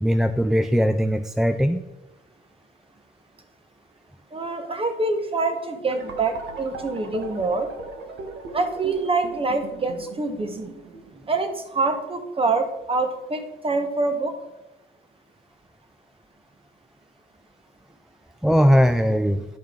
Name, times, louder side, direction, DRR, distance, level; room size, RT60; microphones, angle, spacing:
voice 1, 0.0-1.8 18.4-19.5, equal, ahead, 9 dB, 0.3 m, -19 dB
voice 2, 4.3-7.7 8.5-10.7 11.3-14.3, right 3 dB, 30° right, 7 dB, 1.1 m, -25 dB
sound 1, 5.9-11.7, right 3 dB, 70° right, 1.4 m, -39 dB
10.5 x 5.5 x 3.7 m, 1.1 s
cardioid pair, 90°, 20 cm